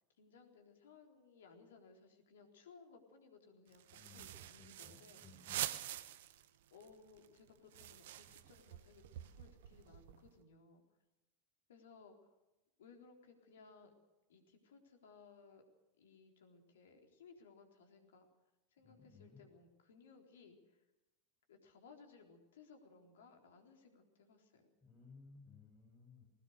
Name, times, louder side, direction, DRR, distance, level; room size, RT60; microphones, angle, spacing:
voice 1, 0.2-5.2 6.7-10.8 11.7-12.3 12.8-13.9 14.3-15.6 16.0-18.2 18.7-20.8 21.5-24.7, left 5 dB, 65° left, 4 dB, 3.8 m, -62 dB
sound 1, 3.7-6.5 6.8-6.9 7.2-10.3, right 12 dB, 60° right, 1.1 m, -46 dB
voice 2, 3.9-5.6 18.8-19.4 24.8-26.2, left 4 dB, 15° left, -2 dB, 7.3 m, -60 dB
21.0 x 19.5 x 6.7 m, 0.99 s
figure-of-eight pair, 85°, 0 cm